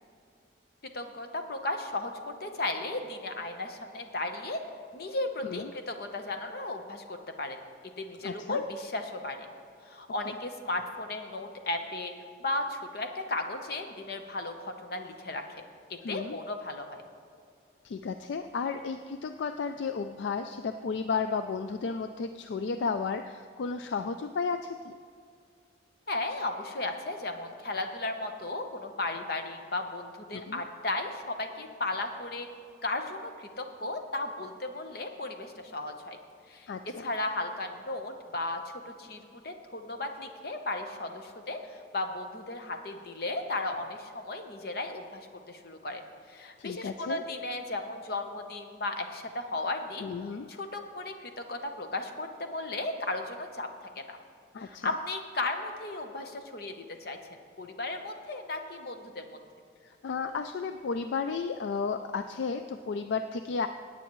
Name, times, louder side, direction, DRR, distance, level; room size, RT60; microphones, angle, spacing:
voice 1, 0.9-4.6 4.9-7.6 8.0-9.4 9.9-12.1 12.4-15.6 15.9-17.0 26.1-32.5 32.8-36.2 36.5-46.0 46.3-50.1 50.5-53.7 54.0-54.2 54.6-57.2 57.6-59.4, left 2 dB, 55° left, 6 dB, 0.9 m, -35 dB
voice 2, 8.2-8.6 10.3-10.4 16.0-16.4 17.8-24.9 30.3-30.6 36.7-37.1 46.6-47.2 50.0-50.5 54.5-54.9 59.8-63.7, left 5 dB, 70° left, 9 dB, 0.3 m, -33 dB
17.0 x 8.9 x 3.1 m, 2.3 s
head